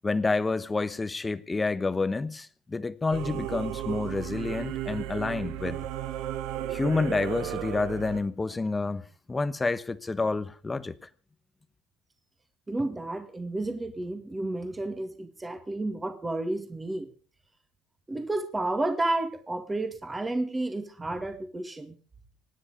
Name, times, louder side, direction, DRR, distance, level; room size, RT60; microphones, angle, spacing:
voice 1, 0.0-5.8 6.7-10.9, left 3 dB, 15° left, 1.1 m, -29 dB
Singing / Musical instrument, 3.1-8.2, right 12 dB, 85° right, 1.4 m, -34 dB
voice 2, 12.7-17.1 18.1-22.0, right 2 dB, 15° right, 2.0 m, -31 dB
25.5 x 9.9 x 5.0 m
cardioid pair, 130°, 0 cm